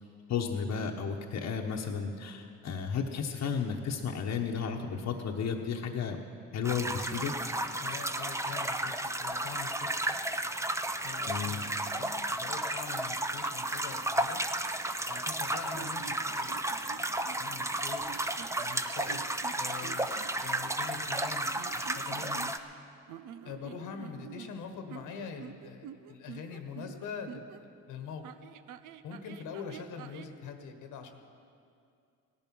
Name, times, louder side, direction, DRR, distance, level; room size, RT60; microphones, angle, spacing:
voice 1, 0.3-6.2 6.5-7.3 11.3-11.6, left 6 dB, 65° left, 1 dB, 1.1 m, -33 dB
sound 1, 6.6-22.6, right 1 dB, 10° right, 0.7 m, -33 dB
voice 2, 7.8-9.9 11.0-14.4 15.0-16.5 17.3-18.0 18.6-19.2 19.6-22.5 23.4-28.2 29.0-31.3, left 6 dB, 90° left, 6 dB, 1.5 m, -44 dB
sound 2, 15.7-17.5 18.0-18.6 19.1-20.3 21.5-22.8 23.1-27.6 28.2-30.4, right 9 dB, 85° right, 0.7 m, -48 dB
17.0 x 11.0 x 6.1 m, 2.4 s
cardioid pair, 90°, 30 cm